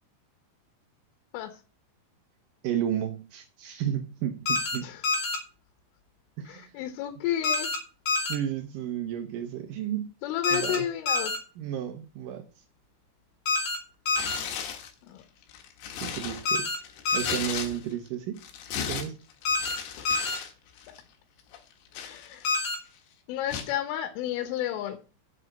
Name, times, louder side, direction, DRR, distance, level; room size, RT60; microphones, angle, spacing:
voice 1, 2.6-4.9 6.4-6.7 8.3-10.1 10.5-10.9 11.6-12.4 16.0-16.8 17.1-18.4 18.9-19.2, right 10 dB, 85° right, 1.9 m, -32 dB
sound 1, 4.5-4.8 5.0-5.4 7.4-7.8 8.1-8.4 10.4-10.8 11.1-11.4 13.5-13.8 14.1-14.4 16.5-16.8 17.1-17.4 19.5-19.8 20.1-20.4 22.5-22.8, left 3 dB, 50° left, 3.8 m, -27 dB
voice 2, 6.5-7.7 10.2-11.3 15.0-15.2 20.0-20.1 21.9-22.6 23.3-25.0, left 11 dB, 85° left, 3.6 m, -32 dB
Tearing, 14.1-14.9 15.4-18.1 18.4-20.5 20.8-21.0 21.5-22.7 23.5-23.8, left 8 dB, 70° left, 3.4 m, -36 dB
8.5 x 6.2 x 7.8 m
omnidirectional pair, 5.5 m